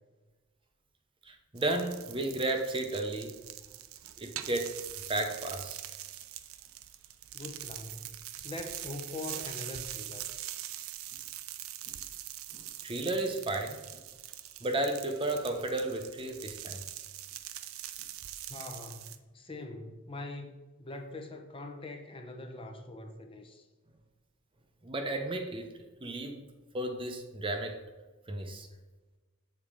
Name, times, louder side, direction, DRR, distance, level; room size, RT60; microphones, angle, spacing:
voice 1, 1.3-3.3 4.2-4.8 5.1-5.8 12.5-13.8 14.6-16.8 24.8-25.7 26.0-26.4 26.7-27.8 28.3-28.7, right 2 dB, 25° right, 5 dB, 0.7 m, -33 dB
sound 1, 1.6-19.2, right 12 dB, 85° right, 0.5 m, -43 dB
voice 2, 7.3-8.2 8.4-10.2 18.5-20.5 20.8-23.7, left 2 dB, 25° left, 4 dB, 0.8 m, -43 dB
7.1 x 4.3 x 4.8 m, 1.2 s
head